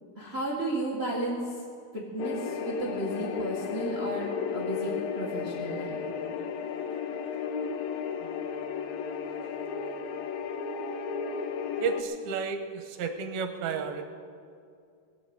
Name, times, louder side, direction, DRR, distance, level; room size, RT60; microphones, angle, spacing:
voice 1, 0.2-1.6 1.9-6.0, right 2 dB, 55° right, -3 dB, 0.6 m, -33 dB
sound 1, 2.2-12.0, left 6 dB, 75° left, 2.1 m, -33 dB
voice 2, 11.8-14.1, right 5 dB, 75° right, 7 dB, 2.7 m, -32 dB
20.5 x 8.1 x 7.8 m, 2.4 s
omnidirectional pair, 4.8 m